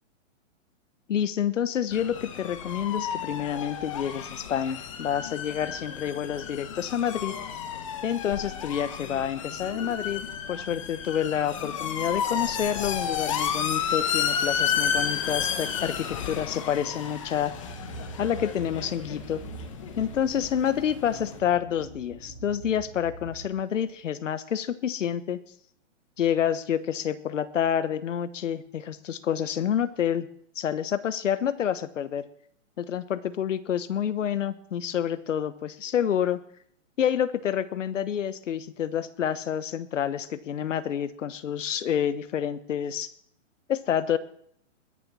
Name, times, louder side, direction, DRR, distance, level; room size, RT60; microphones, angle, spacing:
voice 1, 1.1-7.3 8.0-10.2 10.5-17.5 18.2-19.4 20.0-25.4 26.2-30.3 30.5-32.3 32.8-36.4 37.0-43.1 43.7-44.2, left 9 dB, 70° left, 15 dB, 1.1 m, -28 dB
sound 1, 1.9-21.4, left 8 dB, 25° left, 1.0 m, -32 dB
sound 2, 17.3-23.9, right 4 dB, 15° right, 2.4 m, -44 dB
20.5 x 7.2 x 6.1 m, 0.65 s
hypercardioid pair, 180°, 38 cm